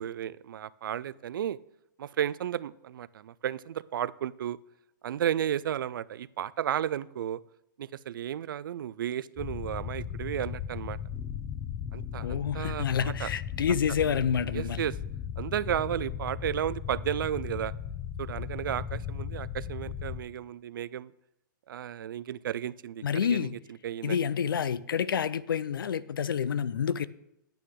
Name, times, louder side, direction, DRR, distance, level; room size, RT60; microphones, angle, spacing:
voice 1, 0.0-1.6 2.0-4.6 5.0-7.4 7.8-11.0 11.9-12.9 13.2-13.3 14.5-14.9 15.4-17.7 18.2-21.1 21.7-23.0 23.3-23.5 23.8-24.3, right 10 dB, 75° right, 0.4 m, -33 dB
sound 1, 9.4-20.2, left 8 dB, 20° left, 0.7 m, -37 dB
voice 2, 12.2-14.9 23.0-23.5 24.0-27.1, left 7 dB, 90° left, 0.5 m, -28 dB
9.2 x 9.1 x 3.7 m
hypercardioid pair, 140°, 11 cm